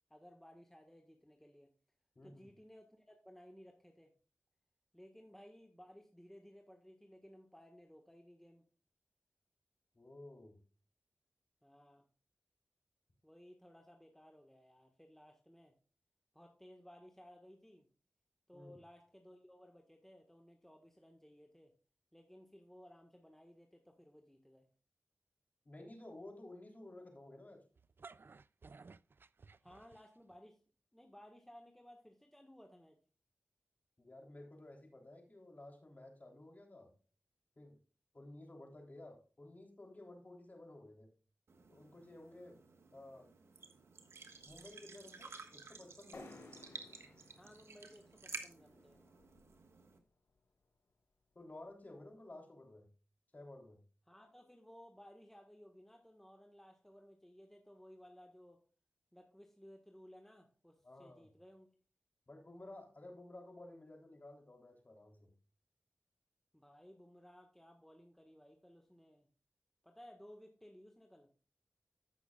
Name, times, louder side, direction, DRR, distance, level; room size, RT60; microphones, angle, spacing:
voice 1, 0.1-1.7 2.2-4.1 4.9-8.7 11.6-12.1 13.2-15.8 16.3-17.9 18.5-21.7 22.1-24.7 29.6-30.6 30.9-33.0 47.4-49.0 54.1-58.6 59.1-61.7 66.5-69.3 69.8-71.3, equal, 5° left, 2 dB, 1.5 m, -59 dB
voice 2, 2.1-2.5 9.9-10.6 18.5-18.7 25.6-27.6 34.0-36.9 37.6-37.8 38.1-41.1 41.7-42.6 42.9-43.3 44.4-46.3 51.3-52.9 53.3-53.8 60.8-61.3 62.3-65.3, left 1 dB, 40° left, 2 dB, 3.4 m, -54 dB
sound 1, 27.8-30.4, right 4 dB, 55° right, 0.4 m, -57 dB
sound 2, 41.5-50.0, right 4 dB, 75° right, 1.3 m, -53 dB
sound 3, 46.1-49.8, left 2 dB, 90° left, 1.9 m, -58 dB
15.0 x 6.1 x 2.4 m, 0.37 s
cardioid pair, 45°, 4 cm